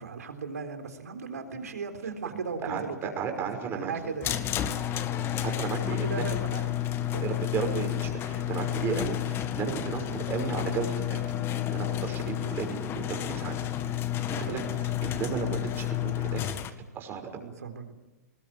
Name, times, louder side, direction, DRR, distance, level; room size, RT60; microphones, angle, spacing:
voice 1, 0.0-5.0 5.8-7.3 14.3-14.7 17.3-18.0, right 5 dB, 70° right, 6 dB, 3.7 m, -38 dB
voice 2, 2.3-4.1 4.6-4.7 5.1-6.2 7.0-11.2 11.6-13.6 14.3-14.6 15.0-16.4 16.9-17.4, right 6 dB, 25° right, 4 dB, 5.8 m, -34 dB
sound 1, 4.2-16.7, left 12 dB, 25° left, 1.7 m, -31 dB
23.5 x 20.5 x 9.1 m, 1.1 s
figure-of-eight pair, 110°, 9 cm